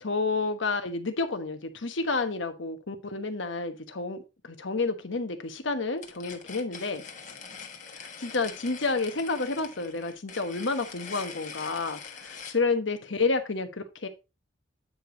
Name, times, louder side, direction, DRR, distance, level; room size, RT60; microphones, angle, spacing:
voice 1, 0.0-7.0 7.9-14.1, left 3 dB, 80° left, 1.2 m, -30 dB
sound 1, 6.0-12.6, left 5 dB, 40° left, 1.4 m, -43 dB
8.9 x 5.1 x 3.9 m
head